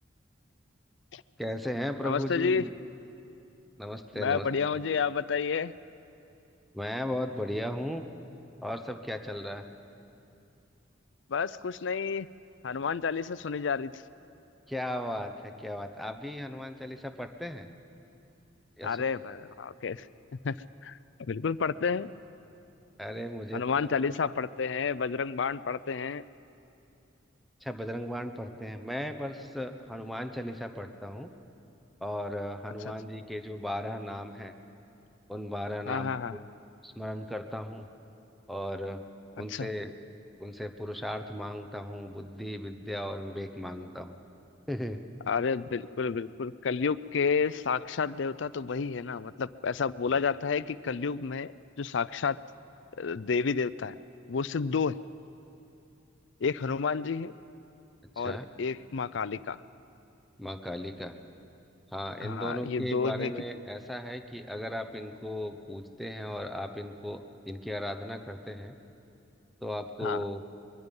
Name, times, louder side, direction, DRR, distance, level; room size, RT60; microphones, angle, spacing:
voice 1, 1.4-2.7 3.8-4.5 6.7-8.0 8.6-9.6 14.7-17.7 18.8-19.1 23.0-24.1 27.6-31.3 32.0-34.5 35.3-36.4 36.8-37.9 38.5-39.0 39.4-39.9 40.4-44.2 44.7-45.0 58.2-58.4 60.4-61.1 61.9-67.2 67.5-68.7 69.6-70.4, left 1 dB, ahead, 5 dB, 0.9 m, -36 dB
voice 2, 2.0-2.7 4.1-5.7 11.3-12.3 12.6-13.9 18.8-20.1 20.4-20.6 20.8-22.1 23.5-26.2 35.9-36.4 39.5-39.7 45.3-51.5 51.8-52.4 53.0-53.9 54.3-55.0 56.4-57.3 58.2-59.6 62.2-63.3 70.0-70.2, left 5 dB, 70° left, 16 dB, 0.5 m, -30 dB
23.0 x 22.5 x 5.4 m, 2.7 s
head